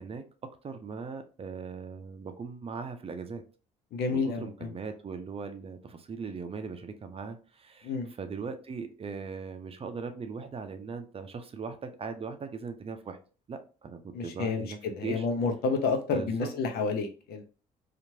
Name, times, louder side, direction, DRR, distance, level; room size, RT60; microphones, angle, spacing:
voice 1, 0.0-3.4 4.1-7.9 8.2-13.2 13.5-15.3 16.1-16.5, right 5 dB, 35° right, 7 dB, 0.5 m, -39 dB
voice 2, 3.9-4.7 7.8-8.1 14.1-17.4, left 4 dB, 65° left, 5 dB, 0.7 m, -30 dB
2.9 x 2.5 x 2.7 m, 0.37 s
supercardioid pair, 65°, 17 cm